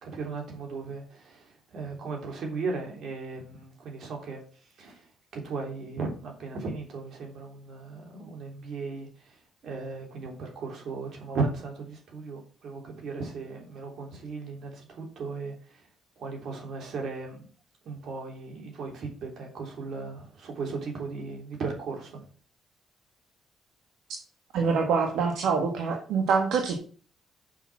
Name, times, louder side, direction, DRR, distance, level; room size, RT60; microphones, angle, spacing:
voice 1, 0.0-4.4 4.8-9.4 9.6-15.8 16.2-17.5 17.8-22.3, right 4 dB, 65° right, 1 dB, 3.3 m, -36 dB
voice 2, 24.5-26.7, right 5 dB, 85° right, 2 dB, 1.5 m, -25 dB
7.0 x 5.7 x 6.1 m, 0.41 s
cardioid pair, 90°, 0 cm